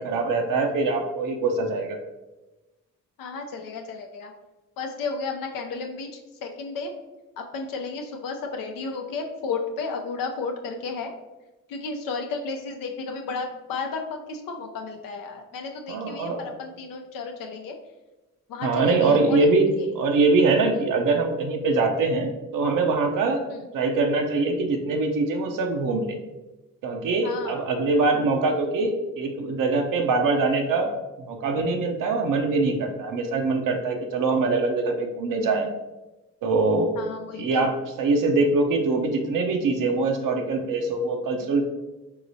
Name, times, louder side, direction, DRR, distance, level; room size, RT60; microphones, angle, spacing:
voice 1, 0.0-2.0 15.9-16.4 18.6-19.7 20.0-23.4 23.7-26.1 26.8-30.9 31.3-35.7 36.4-37.0 37.3-41.6, right 3 dB, 70° right, 4 dB, 0.7 m, -23 dB
voice 2, 3.2-4.3 4.8-6.9 7.4-11.1 11.7-17.8 18.5-19.4 19.8-19.9 20.7-20.8 23.5-23.7 27.2-27.6 31.6-31.7 37.0-37.6, left 4 dB, 80° left, 3 dB, 0.6 m, -33 dB
4.8 x 3.0 x 2.6 m, 1.1 s
supercardioid pair, 50°, 33 cm